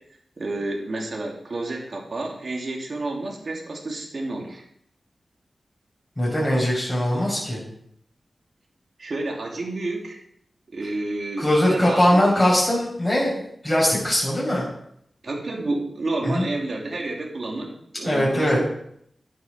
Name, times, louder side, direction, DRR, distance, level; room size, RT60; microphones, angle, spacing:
voice 1, 0.4-4.6 9.0-10.2 10.7-12.2 15.2-18.6, right 2 dB, 60° right, 0 dB, 3.3 m, -30 dB
voice 2, 6.2-7.6 11.4-14.7 16.2-16.5 18.0-18.6, left 1 dB, 10° left, -5 dB, 6.5 m, -21 dB
11.0 x 10.5 x 5.3 m, 0.71 s
cardioid pair, 60°, 0 cm